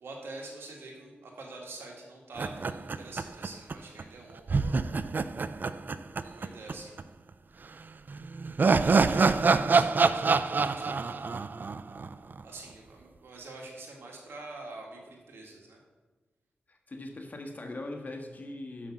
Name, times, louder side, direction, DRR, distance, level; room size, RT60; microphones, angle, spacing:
voice 1, 0.0-4.8 6.2-6.9 8.8-11.3 12.4-15.8, right 2 dB, 90° right, 0 dB, 1.8 m, -45 dB
sound 1, 2.4-3.7 4.0-4.1 4.5-6.7 7.0-7.1 8.1-12.4, right 4 dB, 55° right, 0.4 m, -26 dB
voice 2, 16.7-18.9, left 2 dB, 45° left, 3 dB, 1.4 m, -40 dB
6.4 x 5.7 x 7.1 m, 1.3 s
cardioid pair, 50°, 4 cm